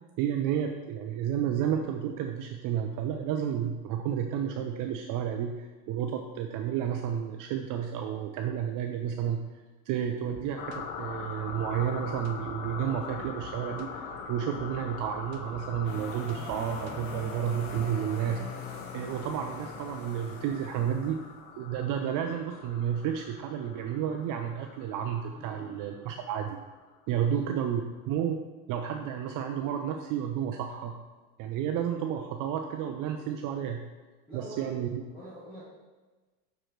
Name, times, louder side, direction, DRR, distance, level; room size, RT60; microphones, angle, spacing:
voice 1, 0.2-9.4 9.9-18.4 18.9-21.2 21.6-26.6 27.1-27.8 28.1-28.4 28.7-31.0 31.4-33.8 34.3-35.0, right 9 dB, 45° right, 4 dB, 0.5 m, -31 dB
sound 1, 10.1-17.9, right 7 dB, 70° right, 0.9 m, -49 dB
sound 2, 10.6-26.8, left 6 dB, 75° left, 0.9 m, -43 dB
sound 3, 15.8-21.4, left 3 dB, 50° left, 1.6 m, -43 dB
voice 2, 25.3-25.8 27.2-27.5 34.3-34.7 35.0-35.6, right 1 dB, 10° left, -10 dB, 2.1 m, -46 dB
6.4 x 4.8 x 4.5 m, 1.3 s
supercardioid pair, 120°, 46 cm